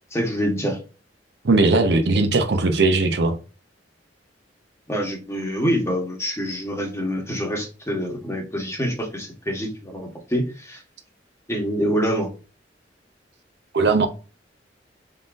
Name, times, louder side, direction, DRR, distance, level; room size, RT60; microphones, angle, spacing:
voice 1, 0.1-0.8 4.9-10.8 11.5-12.3, equal, 15° left, 1.1 m, -26 dB
voice 2, 1.4-3.4 13.7-14.1, right 3 dB, 70° right, 0.7 m, -18 dB
3.8 x 3.8 x 2.5 m
head